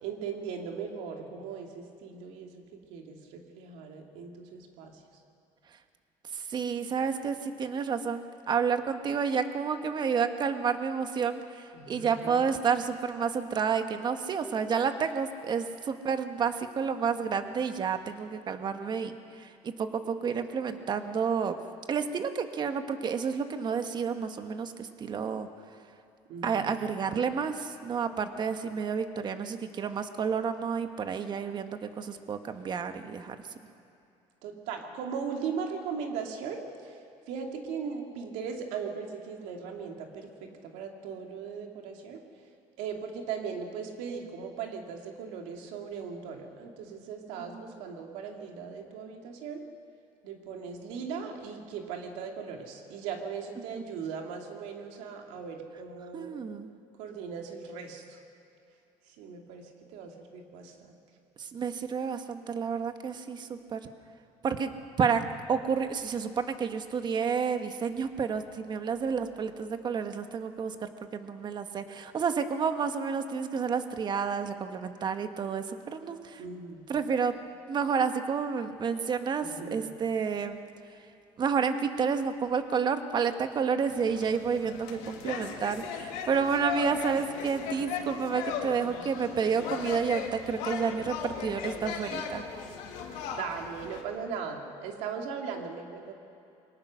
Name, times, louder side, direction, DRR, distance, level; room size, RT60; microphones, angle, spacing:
voice 1, 0.0-5.0 11.7-12.5 26.3-26.7 34.4-37.0 37.3-42.2 42.8-49.6 50.2-56.4 57.0-58.2 59.2-60.9 76.4-76.8 79.4-79.8 93.1-96.1, right 6 dB, 85° right, 2 dB, 2.6 m, -38 dB
voice 2, 6.3-19.1 19.6-21.6 21.9-25.5 26.4-33.3 47.5-47.7 53.7-53.8 56.1-56.7 61.4-63.8 64.4-64.7 65.0-76.4 76.9-77.3 77.7-80.6 81.4-92.4, right 6 dB, 40° right, 8 dB, 1.4 m, -30 dB
sound 1, 83.9-94.0, left 7 dB, 85° left, 2.2 m, -37 dB
23.0 x 18.0 x 6.4 m, 2.7 s
cardioid pair, 115°, 12 cm